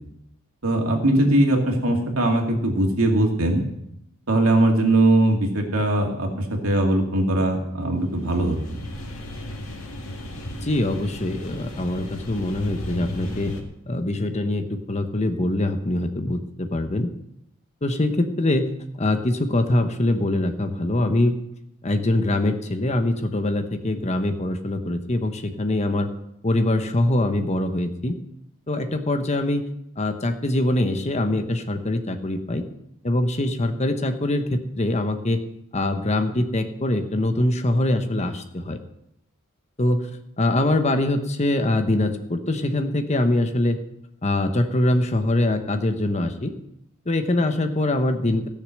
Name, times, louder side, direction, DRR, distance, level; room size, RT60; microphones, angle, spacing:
voice 1, 0.6-3.6 4.3-8.8, right 1 dB, 80° right, 1 dB, 2.5 m, -20 dB
sound 1, 8.0-13.6, left 1 dB, 70° left, 2.0 m, -35 dB
voice 2, 10.6-13.5 13.9-17.1 17.8-18.7 19.0-21.3 21.8-26.1 26.4-28.2 28.7-29.7 30.0-32.6 33.0-35.4 35.7-38.8 39.8-40.1 40.4-43.8 44.2-46.5 47.1-48.5, left 1 dB, 30° left, 8 dB, 0.9 m, -23 dB
15.5 x 6.8 x 6.4 m, 0.80 s
head